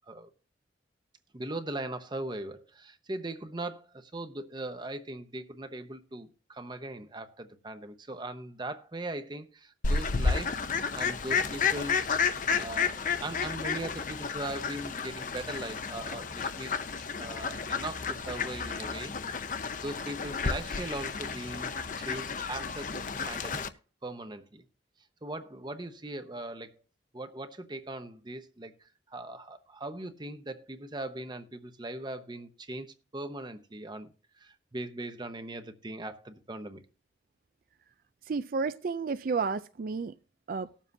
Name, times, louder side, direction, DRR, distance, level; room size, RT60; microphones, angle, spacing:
voice 1, 1.3-10.6 10.9-12.1 12.6-16.8 17.2-19.5 19.8-21.7 22.0-23.6 24.0-24.7 25.2-26.7 27.1-28.7 29.1-34.1 34.4-36.8, right 2 dB, 25° right, 0.8 m, -39 dB
Fowl, 9.8-23.7, left 5 dB, 45° left, 0.6 m, -32 dB
voice 2, 38.2-40.2 40.5-40.7, right 4 dB, 50° right, 0.4 m, -31 dB
19.0 x 7.3 x 2.7 m
head